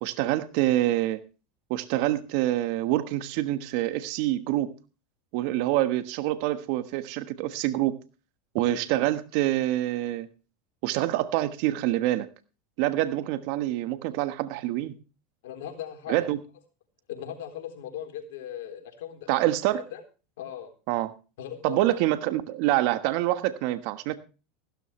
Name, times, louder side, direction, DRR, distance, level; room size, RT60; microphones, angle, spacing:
voice 1, 0.0-1.2 1.7-4.7 5.3-8.0 8.5-10.3 10.8-12.3 12.8-14.9 16.1-16.4 19.3-19.8 20.9-21.1 21.6-24.1, right 15 dB, 65° right, 11 dB, 1.2 m, -26 dB
voice 2, 15.4-16.3 17.1-20.0 20.4-20.7 21.4-22.0, left 10 dB, 75° left, 4 dB, 3.8 m, -39 dB
15.5 x 13.0 x 3.2 m, 0.33 s
hypercardioid pair, 105°, 0 cm